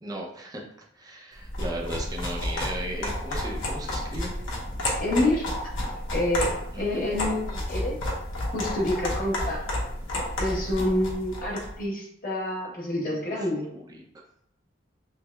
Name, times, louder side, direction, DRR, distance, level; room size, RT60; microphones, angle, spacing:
voice 1, 0.0-0.6 0.9-4.3 6.7-7.1 13.0-14.0, right 1 dB, 20° right, -2 dB, 0.5 m, -37 dB
sound 1, 1.4-11.7, left 1 dB, 80° left, 0.9 m, -31 dB
voice 2, 5.0-5.5 6.1-8.0 8.5-9.7 10.4-13.7, left 1 dB, 45° left, -4 dB, 0.9 m, -27 dB
6.0 x 2.0 x 2.2 m, 0.71 s
head